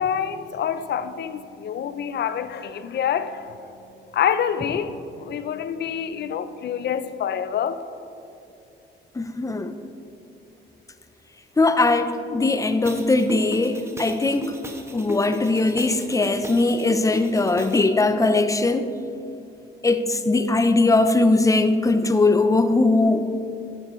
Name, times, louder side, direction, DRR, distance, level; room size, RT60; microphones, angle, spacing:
voice 1, 0.0-3.7 4.1-7.8, left 8 dB, 60° left, 0.6 m, -27 dB
voice 2, 9.2-9.7 11.6-14.6 14.9-18.9 19.8-23.2, left 2 dB, 15° left, 0.6 m, -20 dB
sound 1, 12.8-17.8, equal, 15° right, 1.1 m, -36 dB
11.0 x 9.9 x 3.1 m
cardioid pair, 90°, 20 cm